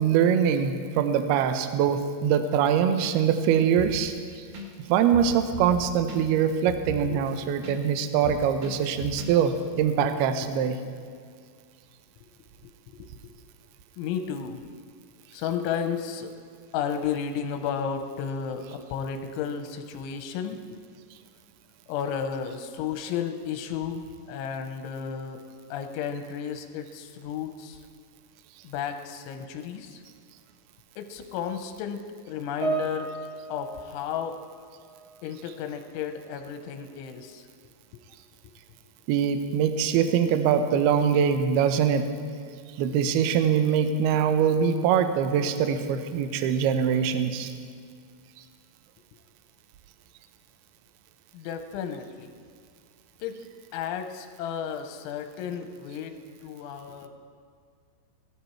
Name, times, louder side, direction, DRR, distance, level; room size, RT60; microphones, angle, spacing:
voice 1, 0.0-4.5 4.8-10.8 39.1-42.1 42.8-47.5, right 8 dB, 85° right, 8 dB, 2.2 m, -23 dB
sound 1, 3.8-4.2 4.5-4.7 4.9-7.8 8.0-9.3 9.6-9.7, left 1 dB, 70° right, 1.8 m, -37 dB
voice 2, 14.0-14.6 15.3-16.3 16.7-20.8 21.9-25.4 25.7-27.8 28.6-30.0 31.0-33.1 33.5-34.4 35.2-37.5 51.3-52.3 53.2-53.4 53.7-56.2 56.4-57.1, left 7 dB, 90° left, 7 dB, 3.1 m, -33 dB
Piano, 32.6-35.3 35.5-35.8 36.6-36.7, right 4 dB, 55° right, 1.8 m, -35 dB
17.0 x 12.5 x 4.5 m, 2.1 s
omnidirectional pair, 5.5 m